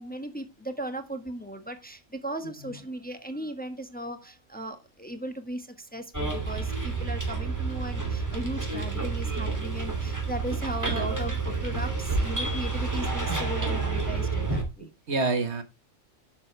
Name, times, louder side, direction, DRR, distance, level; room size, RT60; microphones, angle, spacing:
voice 1, 0.0-14.9, right 1 dB, 5° left, 1.3 m, -37 dB
Bus, 6.1-14.6, right 4 dB, 15° right, 2.8 m, -29 dB
voice 2, 14.8-15.6, right 3 dB, 60° right, 1.7 m, -29 dB
11.5 x 7.5 x 3.3 m
omnidirectional pair, 1.3 m